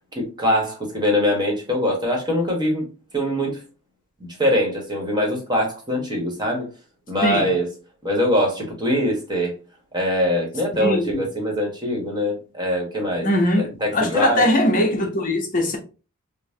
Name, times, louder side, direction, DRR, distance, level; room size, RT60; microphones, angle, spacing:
voice 1, 0.1-2.9 3.1-3.6 4.2-6.7 7.1-7.7 8.0-9.5 9.9-13.3 13.6-14.5, equal, 20° right, 1.1 m, -23 dB
voice 2, 10.8-11.2 13.2-15.8, left 1 dB, 40° left, 0.7 m, -21 dB
5.2 x 2.1 x 2.6 m
head